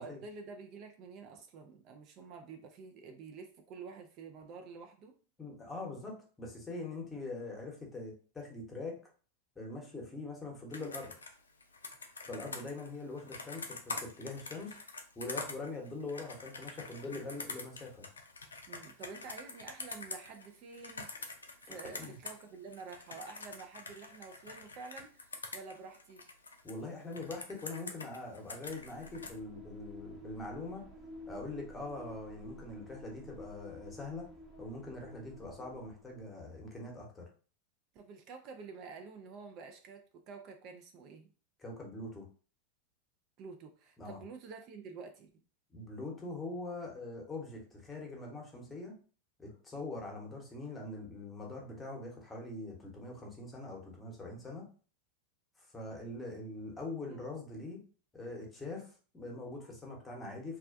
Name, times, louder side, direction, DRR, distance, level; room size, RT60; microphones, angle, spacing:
voice 1, 0.0-5.2 18.7-26.2 37.9-41.3 43.4-45.3 57.1-57.3, right 4 dB, 45° right, 5 dB, 0.4 m, -49 dB
voice 2, 5.4-9.0 9.6-11.2 12.2-14.8 15.2-18.1 21.7-22.2 26.6-30.9 31.3-34.3 34.6-37.3 41.6-42.2 44.0-44.2 45.7-48.9 49.4-54.7 55.6-57.8 58.1-60.6, left 2 dB, 15° left, 0 dB, 0.9 m, -43 dB
Computer keyboard, 10.7-22.4 22.7-26.7 27.1-29.4, left 3 dB, 90° left, 0.3 m, -45 dB
sound 1, 28.6-36.4, equal, 25° right, 0.9 m, -51 dB
2.4 x 2.1 x 2.5 m, 0.39 s
hypercardioid pair, 95°, 0 cm